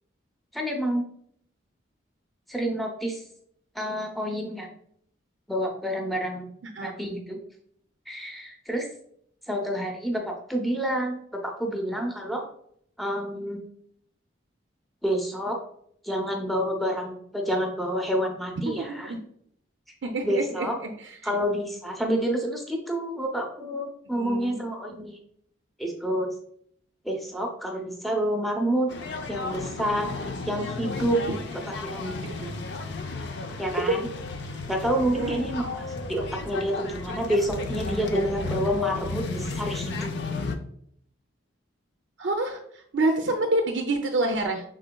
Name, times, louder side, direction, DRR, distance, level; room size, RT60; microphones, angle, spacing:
voice 1, 0.5-1.0 2.5-3.2 3.7-4.7 5.5-6.5 6.8-7.4 8.1-8.9 9.5-12.4 13.0-13.6 15.0-15.6 16.0-19.1 20.2-20.8 21.2-25.2 25.8-26.3 27.0-28.9 29.3-30.1 30.5-31.2 31.7-32.2 33.6-34.1 34.7-40.1, equal, ahead, 1 dB, 0.6 m, -28 dB
voice 2, 18.7-19.2 20.0-20.9 24.2-24.6 31.3-31.4 32.2-32.5 33.9-34.0 35.0-35.4 42.2-44.6, right 2 dB, 65° right, 4 dB, 0.5 m, -27 dB
sound 1, 28.9-40.5, left 3 dB, 60° left, 0.4 m, -33 dB
6.0 x 3.7 x 2.2 m, 0.68 s
head